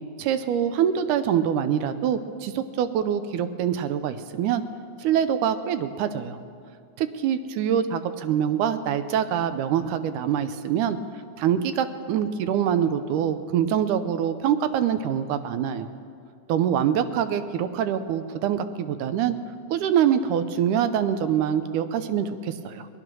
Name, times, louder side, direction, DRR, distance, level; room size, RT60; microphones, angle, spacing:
voice 1, 0.2-4.6 5.0-6.4 7.0-11.0 11.4-15.9 16.5-19.4 19.7-22.9, right 9 dB, 85° right, 11 dB, 2.2 m, -25 dB
18.5 x 11.0 x 6.2 m, 2.3 s
omnidirectional pair, 3.5 m